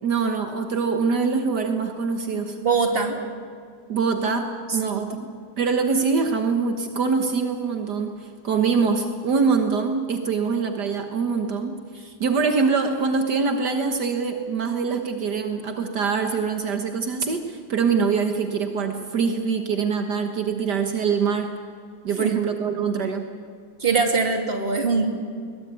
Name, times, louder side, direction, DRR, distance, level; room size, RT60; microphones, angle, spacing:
voice 1, 0.0-2.6 3.9-5.3 5.6-11.7 12.2-21.5 22.0-23.3, right 5 dB, 70° right, 5 dB, 2.0 m, -24 dB
voice 2, 2.6-3.2 4.8-5.0 22.2-22.3 23.8-25.1, right 4 dB, 30° right, 3 dB, 2.8 m, -22 dB
22.0 x 20.5 x 9.6 m, 2.1 s
omnidirectional pair, 1.9 m